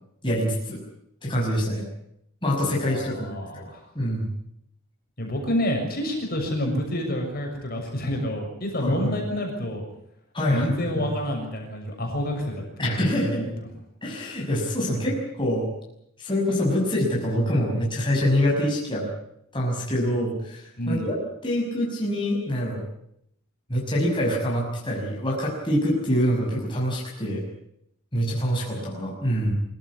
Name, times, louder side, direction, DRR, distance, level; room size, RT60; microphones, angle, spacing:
voice 1, 0.2-0.8 1.2-1.8 2.4-3.6 3.9-4.3 8.8-9.2 10.3-11.1 12.8-13.4 14.0-15.7 16.2-19.1 19.5-21.2 21.4-22.8 23.7-27.4 28.1-29.5, equal, 25° left, -3 dB, 5.9 m, -25 dB
voice 2, 2.6-3.8 5.2-9.8 10.5-13.5 20.8-21.1, equal, 45° left, 2 dB, 6.7 m, -28 dB
25.0 x 15.0 x 9.7 m, 0.75 s
head